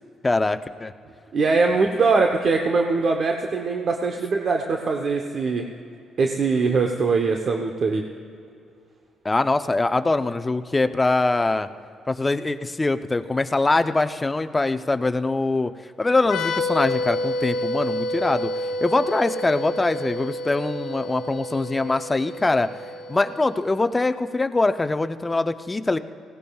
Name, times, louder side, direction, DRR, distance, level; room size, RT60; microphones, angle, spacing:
voice 1, 0.2-0.9 9.2-11.7 12.1-15.7 16.0-18.5 18.8-22.7 23.1-26.0, left 2 dB, 20° left, 9 dB, 0.6 m, -23 dB
voice 2, 1.3-5.7 6.2-8.0, right 4 dB, 50° right, 3 dB, 0.9 m, -22 dB
sound 1, 16.2-23.7, left 1 dB, 90° left, 1.0 m, -29 dB
19.0 x 17.0 x 2.3 m, 2.6 s
cardioid pair, 90°, 0 cm